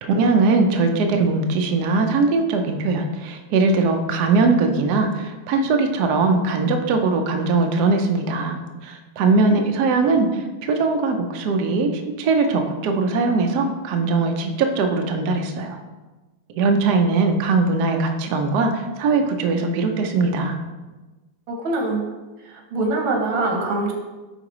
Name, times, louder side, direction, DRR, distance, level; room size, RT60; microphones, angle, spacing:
voice 1, 0.0-8.6 8.8-15.8 16.6-20.6, right 3 dB, 70° right, 4 dB, 1.0 m, -20 dB
voice 2, 21.5-22.1 22.5-23.9, right 2 dB, 90° right, 1 dB, 1.9 m, -24 dB
9.6 x 3.6 x 3.0 m, 1.2 s
omnidirectional pair, 2.1 m